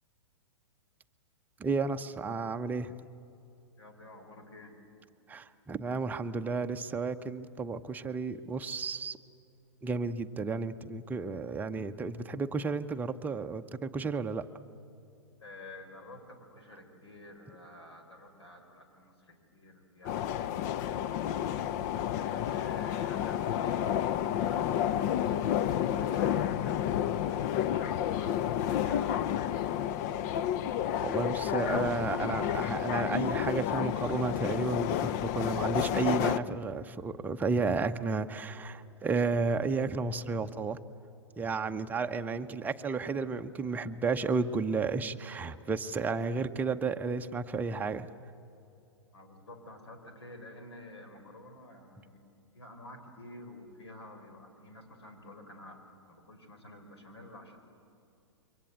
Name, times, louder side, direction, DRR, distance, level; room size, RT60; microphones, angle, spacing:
voice 1, 1.6-2.9 5.3-9.2 9.8-14.4 31.0-40.8 41.4-48.1, right 4 dB, 10° right, 7 dB, 0.8 m, -32 dB
voice 2, 3.8-4.8 15.4-21.6 22.1-25.6 26.0-30.0 49.1-52.2 52.5-57.6, left 1 dB, 70° left, 5 dB, 4.9 m, -50 dB
sound 1, 20.0-36.4, left 10 dB, 40° left, 0.7 m, -30 dB
28.0 x 23.5 x 8.2 m, 2.7 s
figure-of-eight pair, 110°, 15 cm